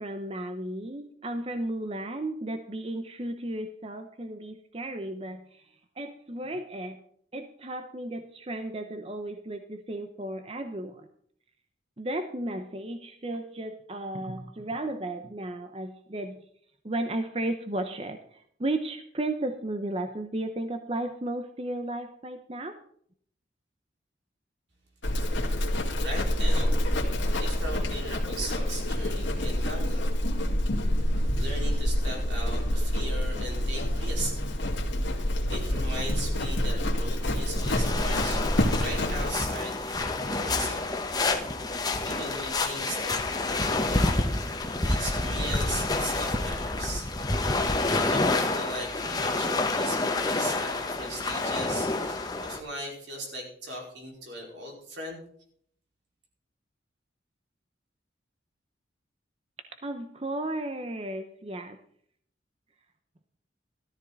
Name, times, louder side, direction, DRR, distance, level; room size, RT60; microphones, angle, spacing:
voice 1, 0.0-7.0 7.3-11.1 12.0-16.4 16.8-22.8 59.8-61.8, right 1 dB, 30° right, 7 dB, 0.8 m, -34 dB
Livestock farm animals working animals, 25.0-39.3, left 1 dB, 85° left, 2.3 m, -27 dB
voice 2, 26.0-26.8 27.4-30.1 31.3-34.4 35.5-38.4 38.8-41.0 42.0-44.1 44.8-47.1 47.9-55.2, right 1 dB, 75° right, -1 dB, 4.9 m, -38 dB
sound 1, 37.5-52.6, left 2 dB, 20° left, 1.2 m, -28 dB
13.5 x 13.5 x 4.1 m, 0.64 s
head